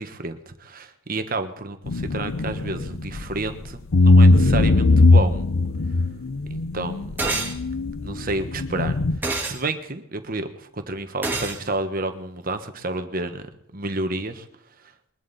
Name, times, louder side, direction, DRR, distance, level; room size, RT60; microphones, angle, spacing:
voice 1, 0.0-5.5 6.5-7.2 8.0-9.0 9.4-13.4 13.7-14.5, right 2 dB, 40° right, 8 dB, 1.3 m, -30 dB
sound 1, 1.9-3.5 3.9-9.2, left 2 dB, 65° left, 0.7 m, -19 dB
sound 2, 7.2-7.6 9.2-9.6 11.2-11.6, right 3 dB, 10° right, 1.8 m, -26 dB
22.0 x 11.5 x 4.2 m, 0.76 s
head